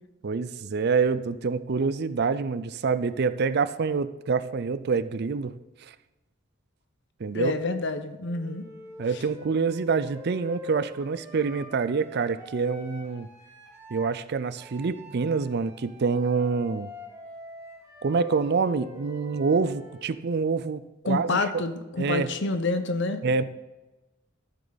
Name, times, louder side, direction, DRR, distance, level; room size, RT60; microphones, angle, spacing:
voice 1, 0.2-5.5 5.8-5.9 7.2-7.5 9.0-13.3 13.9-16.9 18.0-21.6 22.0-22.3 23.2-23.4, right 5 dB, 50° right, 14 dB, 0.4 m, -26 dB
voice 2, 7.3-8.6 21.0-23.2, left 3 dB, 60° left, 10 dB, 0.9 m, -28 dB
Wind instrument woodwind instrument, 8.3-14.1 14.5-20.2, left 3 dB, 15° right, 2.3 m, -45 dB
13.5 x 7.6 x 4.0 m, 1.1 s
head